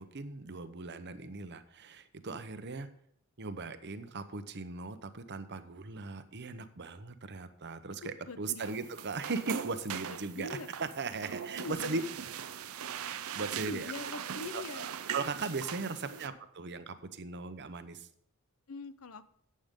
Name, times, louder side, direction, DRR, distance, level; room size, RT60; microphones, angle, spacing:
voice 1, 0.0-2.9 3.4-10.5 10.8-12.0 12.5-12.7 13.1-13.9 14.5-18.1, right 4 dB, 50° right, 11 dB, 0.9 m, -38 dB
voice 2, 8.0-8.6 10.1-10.7 11.6-12.1 13.6-14.9 16.0-16.2 18.7-19.3, left 3 dB, 70° left, 13 dB, 0.8 m, -43 dB
sound 1, 8.6-16.3, right 8 dB, 75° right, 0.6 m, -41 dB
12.0 x 8.8 x 3.8 m, 0.70 s
head